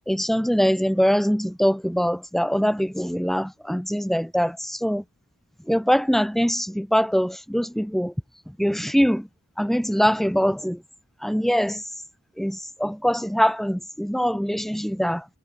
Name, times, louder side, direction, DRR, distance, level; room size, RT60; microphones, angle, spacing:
voice 1, 0.1-5.0 5.7-8.1 8.6-9.3 9.6-10.8 11.2-11.8 12.4-15.2, equal, ahead, 1.1 m, -23 dB
head